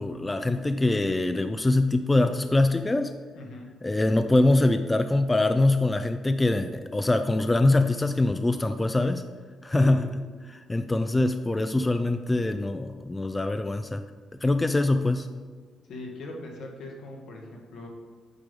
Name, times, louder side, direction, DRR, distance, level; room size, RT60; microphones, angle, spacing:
voice 1, 0.0-3.1 3.8-9.2 9.6-10.2 10.5-14.0 14.4-15.3, left 2 dB, 15° left, 8 dB, 0.3 m, -23 dB
voice 2, 3.4-3.7 9.7-10.1 15.9-17.9, left 2 dB, 75° left, 0 dB, 1.5 m, -40 dB
8.2 x 3.4 x 5.2 m, 1.5 s
cardioid pair, 90°, 0 cm